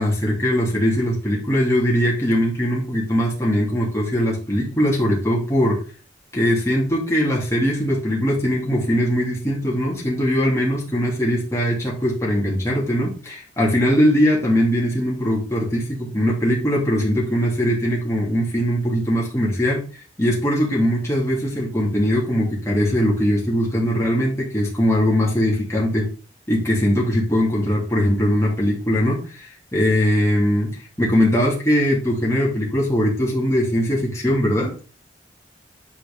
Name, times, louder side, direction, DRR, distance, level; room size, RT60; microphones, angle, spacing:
voice 1, 0.0-5.8 6.3-19.8 20.2-26.0 26.5-30.7 31.0-34.7, equal, 15° left, -4 dB, 2.7 m, -20 dB
9.7 x 4.8 x 3.6 m, 0.36 s
head